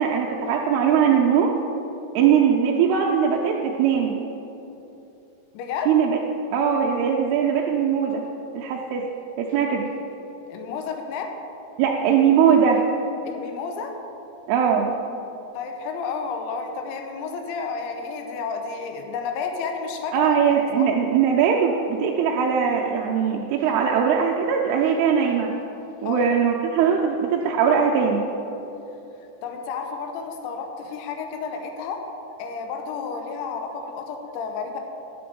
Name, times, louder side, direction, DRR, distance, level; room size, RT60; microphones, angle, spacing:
voice 1, 0.0-1.6 2.2-4.2 5.9-6.2 6.5-8.3 8.5-9.1 9.4-9.9 11.8-12.8 14.5-15.0 20.1-25.5 26.0-28.3, right 7 dB, 85° right, -1 dB, 2.3 m, -20 dB
voice 2, 5.5-5.9 10.5-11.3 13.2-13.9 15.5-20.4 20.8-20.9 26.0-26.3 29.4-32.0 32.4-34.8, left 5 dB, 90° left, 3 dB, 3.1 m, -31 dB
10.5 x 6.9 x 5.2 m, 3.0 s
omnidirectional pair, 5.2 m